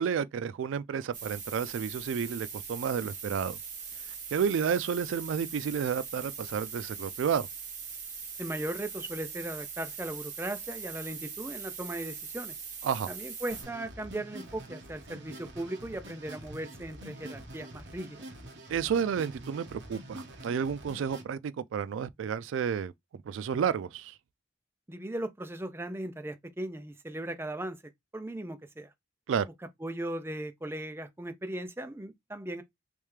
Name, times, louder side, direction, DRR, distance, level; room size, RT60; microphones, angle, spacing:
voice 1, 0.0-3.6 4.3-7.5 12.8-13.1 18.7-22.9 23.3-24.1 29.3-29.5, right 7 dB, 85° right, 0.3 m, -31 dB
sound 1, 1.1-13.6, right 6 dB, 40° right, 1.6 m, -41 dB
voice 2, 8.4-12.6 13.1-18.2 24.9-27.8 28.1-28.9 29.8-32.6, right 1 dB, 10° right, 0.5 m, -37 dB
sound 2, 13.5-21.2, right 1 dB, 65° right, 1.1 m, -46 dB
3.4 x 3.2 x 3.2 m
head